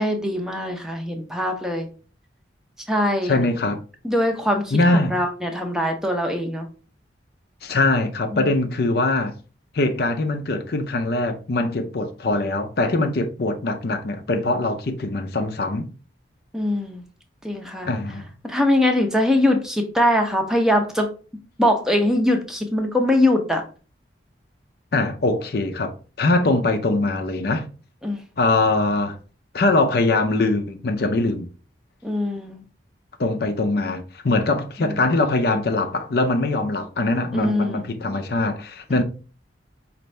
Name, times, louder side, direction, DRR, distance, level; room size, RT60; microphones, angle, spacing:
voice 1, 0.0-1.9 2.9-3.3 4.0-6.7 8.3-8.6 16.5-17.0 17.4-17.9 18.4-21.1 21.6-23.6 28.0-28.2 32.0-32.6 34.8-35.0 37.3-37.9 38.9-39.0, left 1 dB, 5° right, 0.6 m, -22 dB
voice 2, 3.3-3.8 4.7-5.1 7.6-9.3 9.7-15.9 17.9-18.3 24.9-27.6 28.4-29.2 29.5-31.5 33.2-39.0, left 2 dB, 55° left, 0.5 m, -22 dB
5.2 x 2.6 x 3.2 m
head